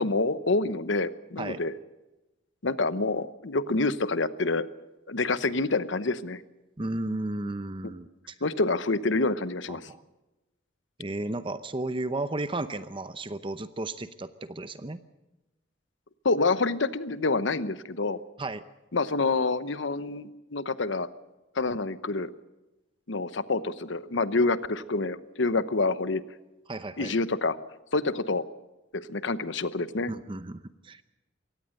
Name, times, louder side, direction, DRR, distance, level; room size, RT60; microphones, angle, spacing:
voice 1, 0.0-1.7 2.6-4.7 5.1-6.4 8.4-9.9 16.2-18.2 18.9-21.1 21.6-22.3 23.1-26.2 27.0-27.6 27.9-28.4 28.9-30.1, left 3 dB, 70° left, 14 dB, 1.0 m, -27 dB
voice 2, 6.8-8.3 9.7-10.0 11.0-15.0 18.4-18.6 26.7-27.1 30.1-31.0, right 2 dB, 25° right, 12 dB, 0.7 m, -34 dB
23.5 x 18.0 x 6.5 m, 1.0 s
head